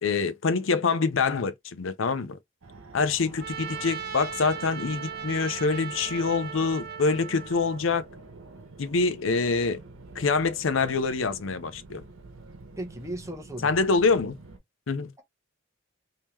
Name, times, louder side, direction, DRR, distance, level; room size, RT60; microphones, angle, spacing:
voice 1, 0.0-2.4 2.9-8.0 8.8-9.8 10.2-12.0 13.6-14.4 14.9-15.1, left 4 dB, 70° left, 0.5 m, -25 dB
Fixed-wing aircraft airplane, 2.6-14.6, right 3 dB, 85° right, 1.0 m, -47 dB
Trumpet, 3.4-7.8, right 7 dB, 45° right, 0.6 m, -38 dB
voice 2, 12.8-13.8, right 1 dB, 15° right, 0.8 m, -36 dB
3.6 x 2.9 x 3.0 m
head